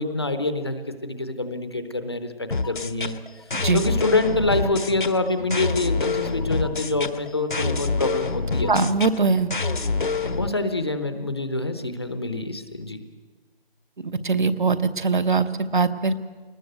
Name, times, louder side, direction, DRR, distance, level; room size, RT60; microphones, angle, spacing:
voice 1, 0.0-3.2 3.7-8.7 10.2-13.0, left 2 dB, 25° left, 9 dB, 0.9 m, -26 dB
sound 1, 2.5-10.5, left 4 dB, 55° left, 1.2 m, -27 dB
voice 2, 3.5-3.8 8.7-9.5 14.2-16.2, right 4 dB, 55° right, 10 dB, 1.1 m, -21 dB
21.5 x 20.0 x 7.9 m, 1.4 s
figure-of-eight pair, 170°, 30 cm